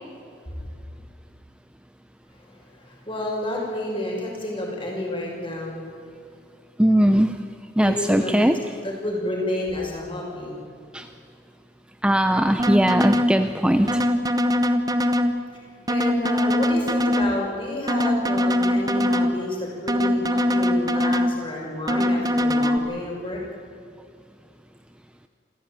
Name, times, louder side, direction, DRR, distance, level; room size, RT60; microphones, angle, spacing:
voice 1, 0.2-0.7 2.3-5.9 7.8-8.5 8.8-10.6 15.9-23.4, left 1 dB, 30° left, -1 dB, 6.1 m, -30 dB
voice 2, 6.8-7.4 7.8-8.6 10.9-11.1 12.0-14.1, equal, 5° right, 8 dB, 0.6 m, -19 dB
sound 1, 12.6-13.3 13.9-15.3 15.9-17.3 17.9-19.3 19.9-21.3 21.9-22.8, left 1 dB, 20° right, 1.0 m, -21 dB
27.0 x 15.5 x 9.2 m, 2.2 s
head